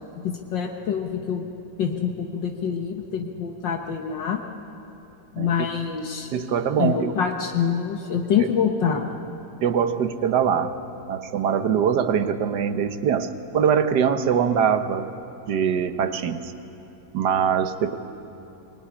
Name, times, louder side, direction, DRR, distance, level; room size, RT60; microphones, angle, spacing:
voice 1, 0.2-1.5 1.8-4.4 5.3-6.3 6.8-9.1, left 7 dB, 75° left, 3 dB, 1.9 m, -25 dB
voice 2, 6.3-7.1 8.4-8.5 9.6-10.8 11.1-13.3 13.5-15.1 15.5-16.5 17.1-17.9, right 7 dB, 65° right, 10 dB, 1.6 m, -22 dB
24.0 x 20.5 x 9.9 m, 2.8 s
omnidirectional pair, 2.0 m